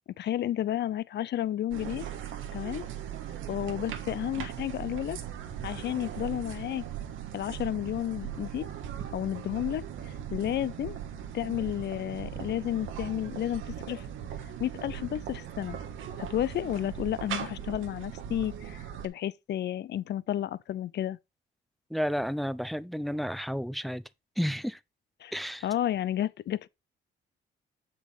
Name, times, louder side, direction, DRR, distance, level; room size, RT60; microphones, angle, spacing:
voice 1, 0.2-2.1 2.5-2.8 3.5-5.2 5.6-6.8 7.3-8.7 9.1-11.0 11.3-14.1 14.6-15.8 16.2-21.2 25.2-25.3 25.6-26.7, left 12 dB, 60° left, 0.6 m, -32 dB
sound 1, 1.7-19.1, right 9 dB, 85° right, 1.5 m, -39 dB
voice 2, 21.9-24.0 24.4-24.8 25.3-25.7, equal, ahead, 0.6 m, -31 dB
7.6 x 6.6 x 3.6 m
cardioid pair, 90°, 20 cm